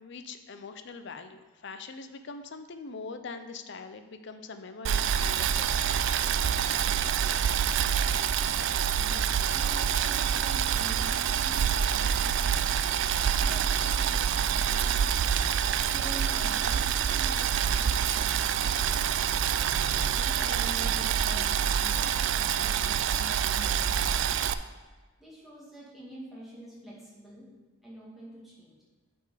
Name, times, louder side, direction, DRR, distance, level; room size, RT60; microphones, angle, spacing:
voice 1, 0.0-6.0, left 4 dB, 60° left, 9 dB, 0.5 m, -43 dB
Boiling, 4.8-24.5, right 8 dB, 60° right, 0.3 m, -26 dB
voice 2, 9.0-12.7 13.4-15.3 15.9-19.1 20.1-24.4 25.2-27.5 27.8-28.8, right 1 dB, ahead, -7 dB, 1.9 m, -46 dB
8.4 x 4.4 x 4.9 m, 1.3 s
head